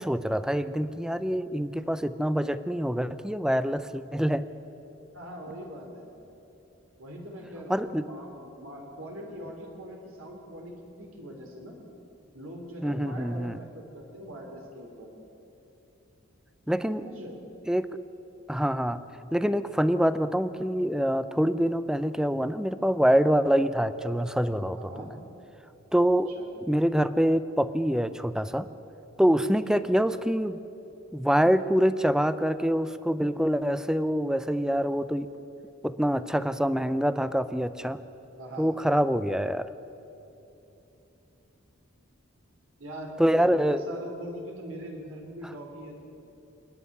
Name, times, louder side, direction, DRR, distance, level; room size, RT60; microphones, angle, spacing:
voice 1, 0.0-4.5 7.7-8.0 12.8-13.6 16.7-17.0 17.7-17.9 18.5-19.0 19.3-24.9 25.9-26.3 26.7-28.7 29.2-30.6 31.1-35.3 35.8-38.0 38.6-39.7 43.2-43.8, equal, 5° right, 13 dB, 0.5 m, -25 dB
voice 2, 5.1-6.1 7.0-11.8 12.3-15.1 17.0-17.4 24.7-25.1 26.1-26.5 29.9-30.0 38.4-38.7 42.8-46.1, equal, 80° right, 1 dB, 3.1 m, -42 dB
27.0 x 9.8 x 9.7 m, 2.9 s
head